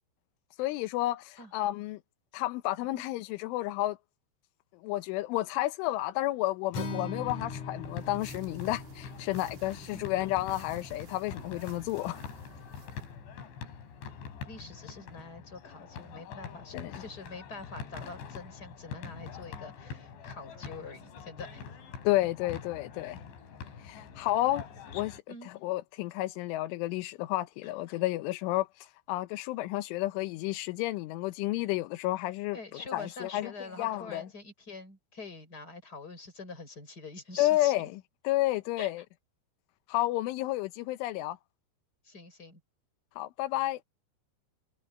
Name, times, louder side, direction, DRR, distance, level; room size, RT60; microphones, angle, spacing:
voice 1, 0.6-2.0 2.3-4.0 4.7-12.2 16.7-16.9 22.0-23.2 23.8-24.7 24.9-25.2 25.6-33.5 33.8-34.3 37.4-39.0 39.9-41.4 43.2-43.8, left 16 dB, 90° left, 3.5 m, -31 dB
Acoustic guitar, 6.7-11.0, left 3 dB, 50° left, 2.6 m, -41 dB
sound 1, 7.2-25.2, left 6 dB, 70° left, 6.3 m, -45 dB
sound 2, 7.8-13.1, right 8 dB, 60° right, 3.4 m, -53 dB
voice 2, 14.5-21.6 25.3-25.5 32.5-37.7 38.8-38.9 42.0-42.6, left 3 dB, 20° left, 6.1 m, -45 dB
omnidirectional pair, 5.4 m